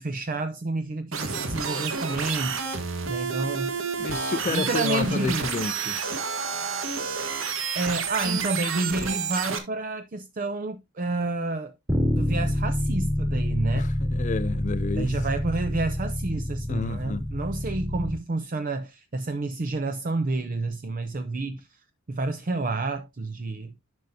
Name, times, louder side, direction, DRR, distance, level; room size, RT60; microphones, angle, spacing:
voice 1, 0.0-2.6 3.1-3.7 4.5-5.5 7.7-11.7 12.1-13.9 14.9-21.7 22.1-23.7, right 2 dB, 45° right, 0.6 m, -29 dB
sound 1, 1.1-9.6, right 5 dB, 85° right, 1.5 m, -30 dB
voice 2, 4.0-6.0 13.7-15.1 16.7-17.3, left 3 dB, 40° left, 0.4 m, -30 dB
Bass guitar, 11.9-18.1, left 1 dB, 15° right, 2.6 m, -27 dB
10.5 x 6.5 x 2.7 m
head